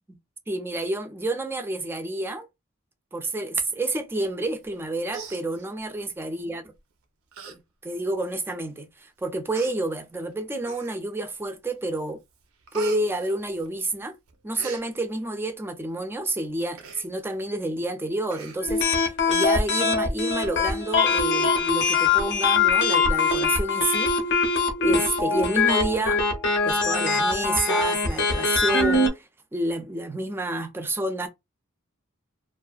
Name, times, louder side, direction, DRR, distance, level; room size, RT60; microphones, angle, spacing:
voice 1, 0.5-2.5 3.1-6.6 7.5-12.2 12.7-14.1 14.4-24.1 24.8-26.2 26.6-31.3, right 2 dB, 10° right, 0.3 m, -29 dB
Human voice, 4.6-4.8 5.1-6.0 6.8-6.9 7.3-7.6 7.9-8.0 8.8-8.9 9.5-9.7 10.6-11.2 11.7-12.0 12.3-14.0 14.3-14.8 16.8-17.1 17.4-17.5 17.8-17.9 18.3-18.9 19.3-19.4, right 5 dB, 90° right, 0.6 m, -40 dB
sound 1, 18.6-29.1, left 4 dB, 60° left, 0.5 m, -22 dB
2.4 x 2.3 x 2.3 m
head